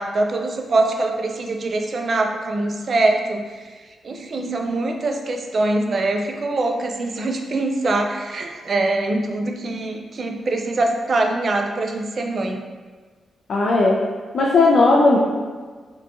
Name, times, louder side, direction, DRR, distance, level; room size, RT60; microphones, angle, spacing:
voice 1, 0.0-3.5 4.0-12.6, right 2 dB, 55° right, 3 dB, 0.3 m, -23 dB
voice 2, 13.5-14.0 14.3-15.2, left 3 dB, 65° left, -3 dB, 0.3 m, -15 dB
2.7 x 2.2 x 2.5 m, 1.5 s
cardioid pair, 70°, 0 cm